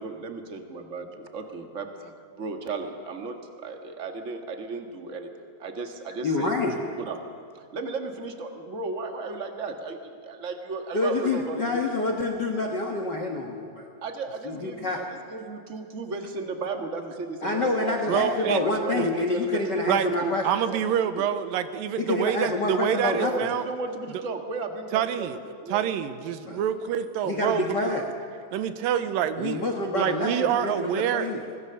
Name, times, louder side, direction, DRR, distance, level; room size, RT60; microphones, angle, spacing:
voice 1, 0.0-5.3 5.6-6.7 7.1-7.2 7.5-11.8 14.0-20.4 20.7-20.8 21.1-21.3 23.0-25.8, right 3 dB, 40° right, 5 dB, 1.0 m, -35 dB
voice 2, 6.2-6.8 10.9-13.9 14.4-15.0 17.4-20.4 22.0-23.5 26.4-26.6 27.2-28.0 29.4-31.4, left 2 dB, 55° left, 3 dB, 1.2 m, -27 dB
voice 3, 18.1-18.6 18.9-19.3 19.9-20.1 20.4-23.6 24.9-25.4 25.7-27.9 28.5-29.6 29.9-31.3, right 9 dB, 80° right, 11 dB, 2.5 m, -26 dB
25.5 x 18.5 x 6.9 m, 2.4 s
omnidirectional pair, 4.1 m